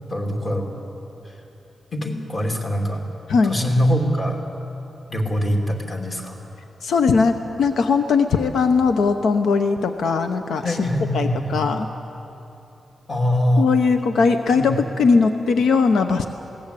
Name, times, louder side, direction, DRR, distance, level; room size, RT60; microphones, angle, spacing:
voice 1, 0.1-0.7 1.9-3.0 3.4-4.4 5.1-6.4 10.6-11.6 13.1-13.7 14.5-14.7, equal, 30° left, 1 dB, 2.8 m, -23 dB
voice 2, 6.8-10.8 11.1-11.9 13.6-16.3, left 5 dB, 85° left, 7 dB, 0.9 m, -19 dB
21.0 x 17.5 x 8.4 m, 2.9 s
wide cardioid pair, 155°, 0 cm